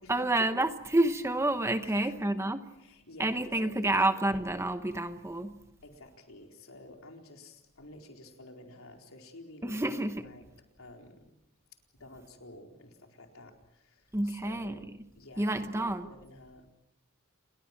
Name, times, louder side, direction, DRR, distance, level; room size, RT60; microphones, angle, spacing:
voice 1, 0.1-2.6 3.2-5.6 9.6-10.2 14.1-14.8 15.4-16.1, right 1 dB, 10° right, 1.0 m, -29 dB
voice 2, 1.8-4.4 5.8-10.5 10.8-11.3 11.9-14.9 15.2-16.7, left 1 dB, 65° left, 4.2 m, -51 dB
29.5 x 22.0 x 6.0 m
head